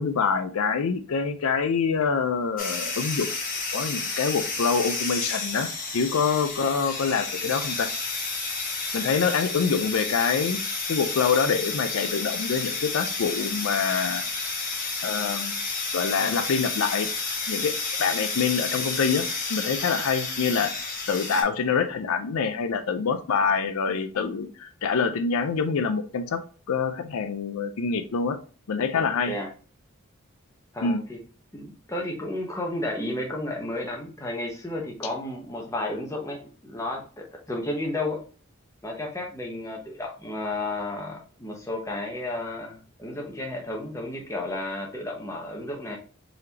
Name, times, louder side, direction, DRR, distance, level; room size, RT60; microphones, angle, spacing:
voice 1, 0.0-3.3 3.7-7.9 8.9-10.6 10.9-14.2 15.0-15.5 15.9-17.1 17.5-17.7 18.0-20.8 21.1-26.4 26.7-28.4 28.7-29.3 30.8-31.0, left 5 dB, 85° left, 8 dB, 0.5 m, -25 dB
sound 1, 2.6-21.4, left 4 dB, 40° left, 1.1 m, -31 dB
voice 2, 28.9-29.5 30.7-31.2 31.5-38.2 38.8-46.0, left 1 dB, 15° left, 0 dB, 0.9 m, -32 dB
3.9 x 3.3 x 2.8 m, 0.39 s
head